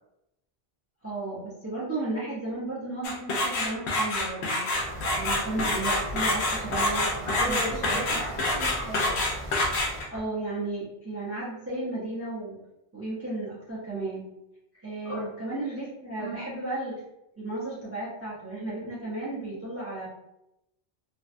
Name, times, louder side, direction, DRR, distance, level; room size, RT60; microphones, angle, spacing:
voice 1, 1.0-4.7 5.1-7.6 7.9-8.0 10.1-12.6 12.9-14.3 14.8-16.9 17.3-20.1, right 2 dB, 15° right, -7 dB, 0.5 m, -34 dB
sound 1, 3.0-10.2, left 1 dB, 85° left, 0.9 m, -27 dB
sound 2, 4.7-10.0, right 1 dB, 55° right, 0.7 m, -39 dB
voice 2, 7.2-9.2 15.0-15.2 16.2-16.4, equal, 35° left, -8 dB, 0.7 m, -35 dB
2.6 x 2.1 x 2.4 m, 0.85 s
omnidirectional pair, 1.1 m